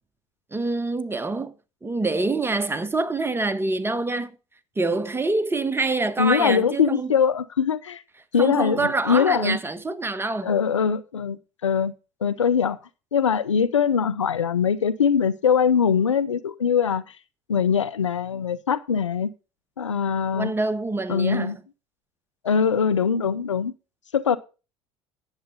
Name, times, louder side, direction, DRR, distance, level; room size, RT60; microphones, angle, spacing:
voice 1, 0.5-1.5 1.8-4.4 4.8-7.1 8.4-10.5 20.3-21.5, right 3 dB, 15° right, 1.4 m, -26 dB
voice 2, 6.2-8.0 8.3-9.6 10.4-11.9 12.2-12.8 13.1-17.0 17.5-19.3 19.8-20.5 21.1-21.6 22.4-23.7 24.1-24.4, left 7 dB, 90° left, 0.6 m, -22 dB
10.5 x 7.7 x 5.5 m
hypercardioid pair, 65°, 15 cm